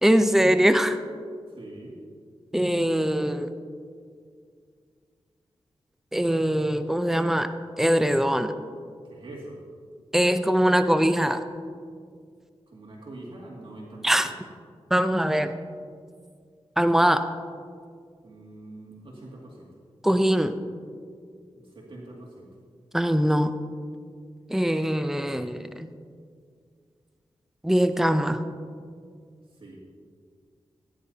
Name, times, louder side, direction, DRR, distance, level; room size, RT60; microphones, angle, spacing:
voice 1, 0.0-1.0 2.5-3.5 6.1-8.5 10.1-11.4 14.0-14.3 14.9-15.5 16.8-17.3 20.0-20.5 22.9-23.5 24.5-25.9 27.6-28.4, equal, 5° right, 10 dB, 0.6 m, -22 dB
voice 2, 1.5-2.0 9.0-9.6 12.7-14.4 18.2-19.7 21.5-22.5 29.5-29.8, right 2 dB, 55° right, -4 dB, 2.4 m, -44 dB
17.0 x 10.0 x 2.9 m, 2.1 s
cardioid pair, 50°, 11 cm